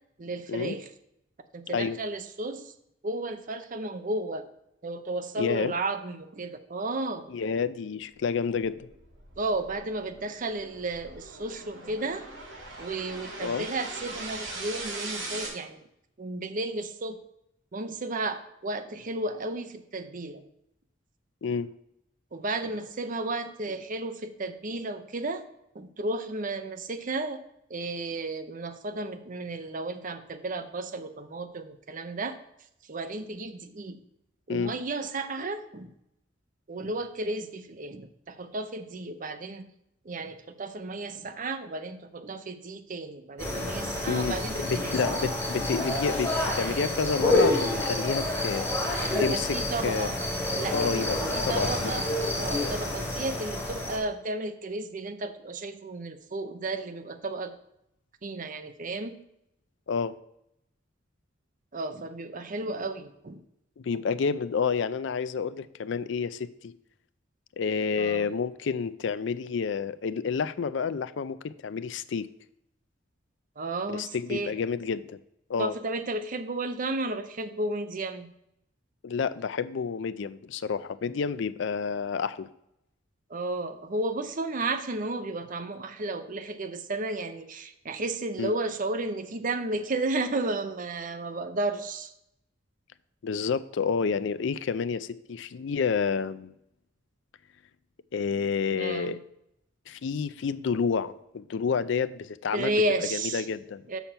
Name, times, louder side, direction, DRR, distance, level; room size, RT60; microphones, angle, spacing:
voice 1, 0.2-0.9 1.5-2.7 3.0-4.5 4.8-7.3 9.4-12.3 12.8-15.8 16.2-17.2 17.7-20.4 22.3-25.4 25.7-27.4 27.7-32.4 32.9-34.0 34.5-35.9 36.7-39.7 40.0-44.9 49.1-50.2 50.6-52.1 52.4-57.5 58.2-59.2 61.7-63.4 67.9-68.3 73.6-74.5 75.6-78.3 83.3-92.1 98.7-99.2 102.5-103.5 103.9-104.0, right 2 dB, 45° right, 8 dB, 0.7 m, -33 dB
voice 2, 5.4-5.7 7.3-8.9 13.4-13.7 21.4-21.7 34.5-34.7 44.1-48.7 49.2-49.5 49.8-50.1 50.7-51.2 51.4-51.9 59.9-60.1 63.8-66.7 67.6-72.3 73.9-75.2 75.5-75.7 79.0-82.5 88.4-88.5 93.2-96.5 98.1-99.2 99.9-102.7 103.1-103.8, left 5 dB, 70° left, 15 dB, 0.4 m, -29 dB
sound 1, 8.5-15.5, right 3 dB, 90° right, 2.8 m, -40 dB
sound 2, 43.4-54.0, left 1 dB, 15° left, 2.8 m, -28 dB
7.0 x 5.9 x 5.6 m, 0.78 s
head